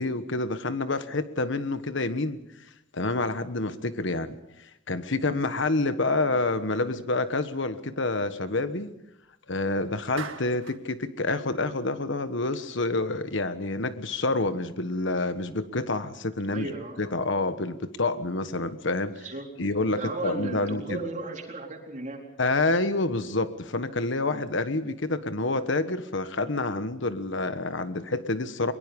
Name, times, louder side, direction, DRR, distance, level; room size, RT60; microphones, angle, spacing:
voice 1, 0.0-2.4 2.9-8.9 9.5-16.7 17.0-19.2 19.6-21.0 22.4-28.7, left 2 dB, 65° left, 1.4 m, -28 dB
Clapping, 10.2-10.8, right 5 dB, 80° right, 1.9 m, -39 dB
voice 2, 16.4-17.0 19.2-19.5 20.0-22.2, right 2 dB, 40° right, 4.1 m, -35 dB
23.0 x 22.5 x 5.4 m
head